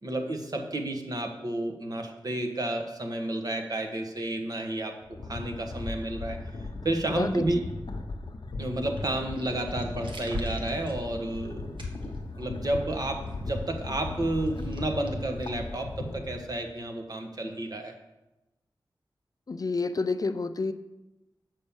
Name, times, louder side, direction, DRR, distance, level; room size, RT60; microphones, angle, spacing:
voice 1, 0.0-4.9 5.3-6.4 6.8-7.6 8.6-12.1 12.4-17.9, right 1 dB, 50° right, 4 dB, 1.3 m, -31 dB
sound 1, 5.0-16.6, left 2 dB, 65° left, 0.9 m, -37 dB
sound 2, 8.8-16.1, equal, 80° right, 1.4 m, -44 dB
voice 2, 19.5-20.7, left 3 dB, 50° left, 10 dB, 0.5 m, -29 dB
7.4 x 5.3 x 7.2 m, 0.99 s
wide cardioid pair, 95°, 8 cm